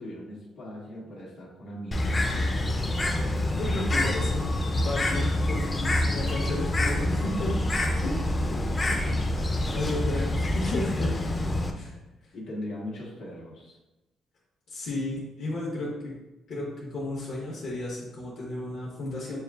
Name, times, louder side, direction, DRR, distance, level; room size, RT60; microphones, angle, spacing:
voice 1, 0.0-2.3 8.5-9.5 12.3-13.8, left 1 dB, 85° left, -6 dB, 1.3 m, -40 dB
Bird, 1.9-11.7, left 1 dB, 25° left, 0.5 m, -27 dB
voice 2, 3.5-7.5 7.9-8.5 9.7-11.1 11.7-11.9 14.7-16.1 16.5-19.4, left 2 dB, 65° left, -6 dB, 1.1 m, -33 dB
6.7 x 2.4 x 2.3 m, 1.0 s
cardioid pair, 90°, 0 cm